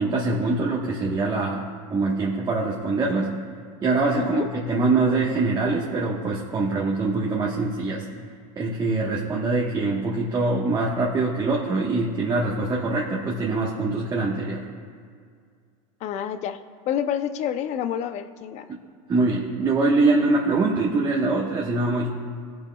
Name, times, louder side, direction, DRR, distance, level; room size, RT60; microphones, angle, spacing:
voice 1, 0.0-1.6 1.9-3.3 3.8-8.0 8.6-14.7 19.1-22.1, right 3 dB, 20° right, -4 dB, 1.3 m, -23 dB
voice 2, 16.0-16.6 16.9-18.7, left 9 dB, 40° left, 11 dB, 0.6 m, -28 dB
20.5 x 7.3 x 2.3 m, 2.1 s
supercardioid pair, 125°, 18 cm